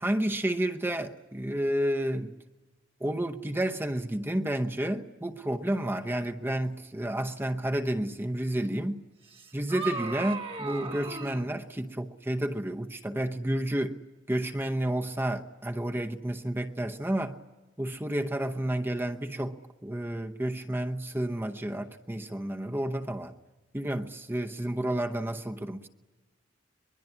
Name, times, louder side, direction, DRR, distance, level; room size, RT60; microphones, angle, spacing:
voice 1, 0.0-2.3 3.0-9.0 9.5-14.0 14.3-17.4 17.8-23.3 23.7-25.9, right 1 dB, 10° right, 0.8 m, -31 dB
sound 1, 9.3-11.5, right 4 dB, 30° right, 1.7 m, -36 dB
23.0 x 22.0 x 9.7 m
head